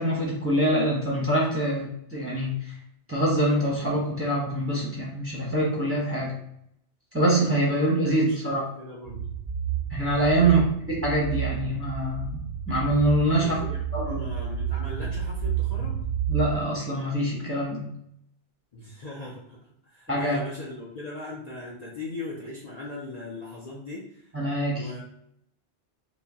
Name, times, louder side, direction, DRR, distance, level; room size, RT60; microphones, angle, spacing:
voice 1, 0.0-2.8 3.1-6.4 7.1-8.6 9.9-10.6 10.9-13.6 13.9-14.2 16.3-17.8 20.1-20.4 24.3-24.9, right 1 dB, 15° right, -4 dB, 0.8 m, -25 dB
voice 2, 7.7-9.3 10.4-10.7 13.3-16.0 18.7-19.6 19.8-24.3 24.7-25.0, left 2 dB, 45° left, -4 dB, 0.6 m, -39 dB
sound 1, 9.0-16.6, right 8 dB, 60° right, 0.7 m, -30 dB
4.7 x 2.2 x 2.7 m, 0.74 s
omnidirectional pair, 1.2 m